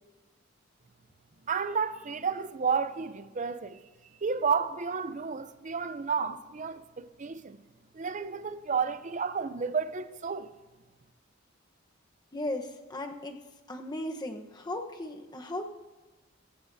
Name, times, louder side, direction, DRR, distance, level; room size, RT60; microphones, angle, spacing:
voice 1, 1.5-3.8 4.2-7.6 7.9-10.5, right 5 dB, 40° right, 0.6 m, -31 dB
voice 2, 12.3-13.4 13.7-15.6, left 1 dB, 20° left, 1.0 m, -36 dB
22.0 x 15.0 x 2.7 m
head